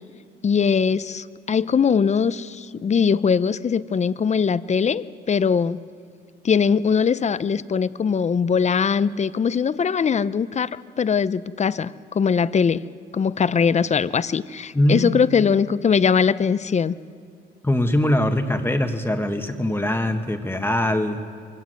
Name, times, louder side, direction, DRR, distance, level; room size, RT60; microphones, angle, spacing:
voice 1, 0.4-5.8 6.4-17.0, left 6 dB, 35° left, 16 dB, 0.6 m, -21 dB
voice 2, 14.7-15.2 17.6-21.2, left 1 dB, 10° left, 5 dB, 1.5 m, -22 dB
23.0 x 17.5 x 7.8 m, 2.2 s
cardioid pair, 90°, 20 cm